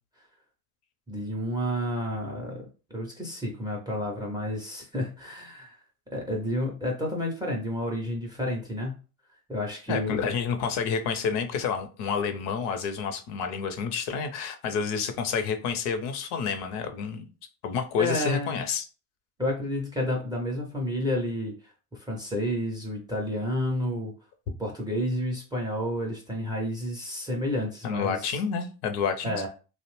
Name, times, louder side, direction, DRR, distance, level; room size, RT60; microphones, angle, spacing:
voice 1, 1.1-2.6 2.9-5.8 6.1-9.0 9.5-10.2 18.0-18.6 19.4-24.1 24.6-28.3 29.2-29.5, left 1 dB, 10° right, 0.4 m, -30 dB
voice 2, 9.9-17.3 17.6-18.8 27.8-29.5, left 6 dB, 55° left, 0.6 m, -29 dB
2.6 x 2.1 x 3.0 m
supercardioid pair, 105°, 46 cm